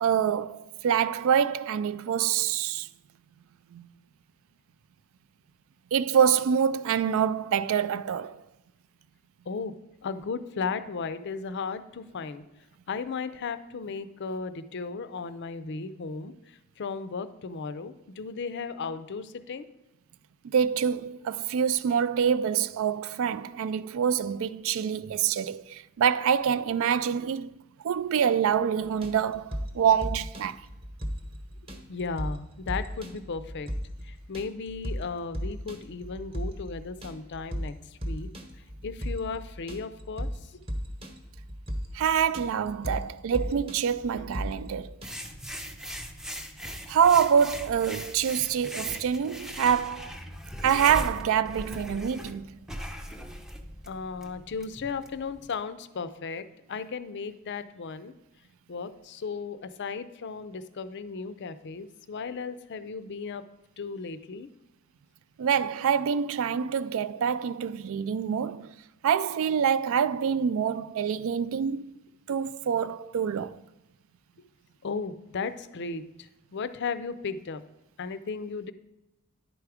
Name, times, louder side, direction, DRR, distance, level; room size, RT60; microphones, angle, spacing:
voice 1, 0.0-2.9 3.7-3.9 5.9-8.4 20.4-27.5 27.8-30.6 41.9-45.0 46.9-50.2 50.6-52.5 65.4-68.7 69.0-71.9 72.3-73.6, right 8 dB, 60° right, 0.3 m, -26 dB
voice 2, 10.0-12.4 12.9-16.3 16.8-19.7 31.7-33.7 34.0-37.7 38.0-38.3 38.8-40.5 53.9-58.1 58.7-63.4 63.8-64.5 74.8-77.6 78.0-78.7, left 4 dB, 50° left, 0.5 m, -35 dB
sound 1, 28.8-45.1, equal, 25° right, 1.0 m, -36 dB
sound 2, 45.0-55.5, equal, ahead, 0.5 m, -39 dB
10.5 x 4.7 x 4.9 m
head